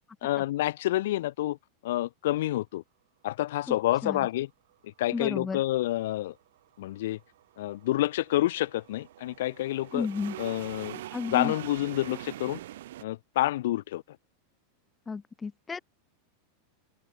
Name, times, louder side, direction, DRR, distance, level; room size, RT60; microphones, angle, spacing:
voice 1, 0.2-1.6 1.8-2.8 3.2-4.5 4.8-6.3 6.8-7.2 7.6-10.1 10.4-11.0 11.3-12.6 13.0-14.0, left 15 dB, 60° left, 0.5 m, -28 dB
voice 2, 5.1-5.6 9.9-10.4 11.1-11.5 15.1-15.8, left 5 dB, 10° left, 0.5 m, -32 dB
sound 1, 6.1-13.0, right 14 dB, 65° right, 1.5 m, -44 dB
open air
supercardioid pair, 180°, 0 cm